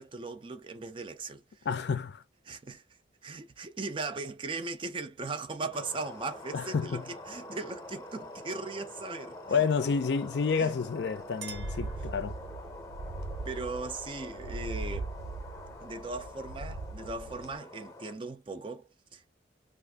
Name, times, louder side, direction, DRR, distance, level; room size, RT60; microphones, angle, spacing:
voice 1, 0.0-1.4 2.4-2.8 3.2-9.7 10.6-10.8 13.4-15.1 15.8-19.4, right 3 dB, 30° right, 0.4 m, -38 dB
voice 2, 1.7-2.2 6.5-7.0 9.5-12.4, left 5 dB, 70° left, 0.4 m, -29 dB
sound 1, 5.7-18.1, left 1 dB, 20° left, 0.7 m, -46 dB
sound 2, 10.8-10.9 11.4-17.5, right 2 dB, 90° right, 0.5 m, -40 dB
Chink clink, 11.3-12.7, right 7 dB, 70° right, 0.9 m, -49 dB
2.5 x 2.4 x 3.4 m
head